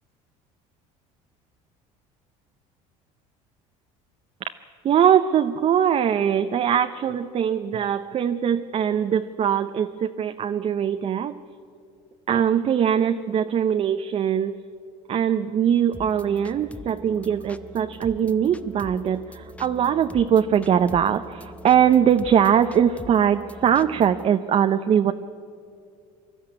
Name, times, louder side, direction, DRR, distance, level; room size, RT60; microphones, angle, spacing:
voice 1, 4.8-11.4 12.3-14.6 15.1-25.1, right 8 dB, 40° right, 8 dB, 0.7 m, -21 dB
sound 1, 15.9-24.3, left 1 dB, 10° left, 0.8 m, -42 dB
24.5 x 13.0 x 9.8 m, 2.4 s
supercardioid pair, 100°, 15 cm